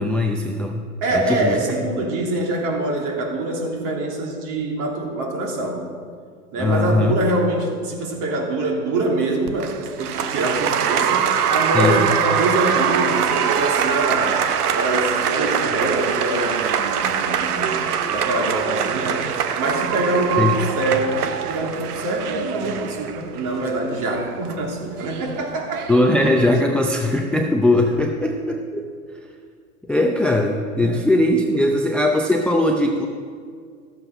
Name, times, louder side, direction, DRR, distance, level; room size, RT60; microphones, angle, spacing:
voice 1, 0.0-0.9 1.1-1.6 6.6-7.1 11.7-12.1 20.4-20.6 25.9-28.9 29.8-33.1, left 1 dB, 5° left, 2 dB, 0.5 m, -19 dB
voice 2, 1.0-5.8 6.5-14.4 14.7-17.8 18.1-25.9 30.8-31.0, right 2 dB, 45° right, 0 dB, 2.9 m, -24 dB
Applause, 9.5-26.6, right 8 dB, 80° right, 1.0 m, -23 dB
13.5 x 7.6 x 5.5 m, 2.1 s
hypercardioid pair, 110°, 45 cm